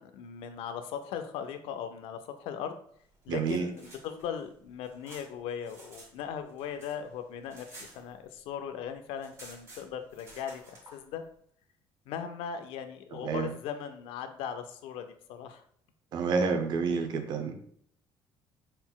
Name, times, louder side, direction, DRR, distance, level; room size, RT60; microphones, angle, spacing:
voice 1, 0.0-2.7 3.3-7.7 8.0-11.2 12.1-15.6, left 8 dB, 90° left, 8 dB, 0.4 m, -38 dB
sound 1, 3.2-6.1 6.4-8.6 8.8-8.9 9.1-11.0, right 1 dB, 30° right, 1.6 m, -52 dB
voice 2, 3.3-3.7 13.1-13.5 16.1-17.5, right 5 dB, 50° right, 5 dB, 0.6 m, -29 dB
4.0 x 3.8 x 2.3 m, 0.64 s
cardioid pair, 160°, 9 cm